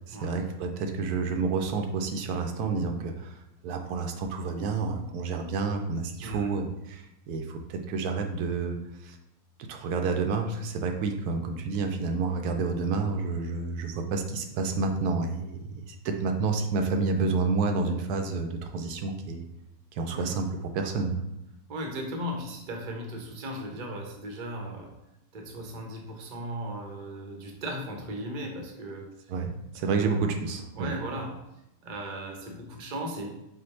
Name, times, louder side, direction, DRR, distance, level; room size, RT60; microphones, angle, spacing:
voice 1, 0.1-3.4 3.6-9.2 9.7-19.4 19.9-21.2 29.3-30.9, right 4 dB, 85° right, 5 dB, 1.1 m, -29 dB
voice 2, 21.7-24.9 25.3-29.1 29.7-30.1 30.7-31.3 31.8-33.3, right 1 dB, 45° right, 1 dB, 0.6 m, -37 dB
4.9 x 2.1 x 4.1 m, 0.85 s
omnidirectional pair, 1.6 m